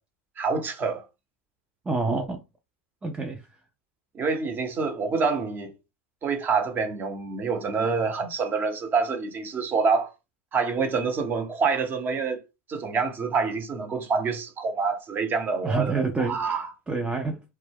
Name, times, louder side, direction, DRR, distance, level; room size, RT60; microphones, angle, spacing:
voice 1, 0.4-1.0 4.1-5.7 6.2-10.1 10.5-12.4 12.7-16.7, right 5 dB, 30° right, 0.8 m, -26 dB
voice 2, 1.9-2.4 3.0-3.5 15.6-17.4, right 3 dB, 15° right, 0.4 m, -28 dB
2.2 x 2.0 x 3.4 m
hypercardioid pair, 95°, 7 cm